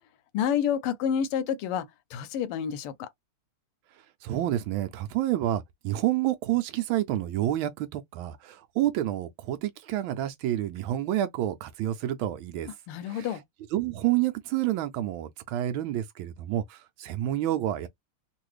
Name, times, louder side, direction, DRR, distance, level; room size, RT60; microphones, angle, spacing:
voice 1, 0.3-3.1 12.9-13.4, left 8 dB, 85° left, 1.6 m, -29 dB
voice 2, 4.2-12.7 13.1-13.3 13.7-17.9, right 13 dB, 75° right, 1.3 m, -29 dB
3.8 x 2.4 x 3.1 m
omnidirectional pair, 2.4 m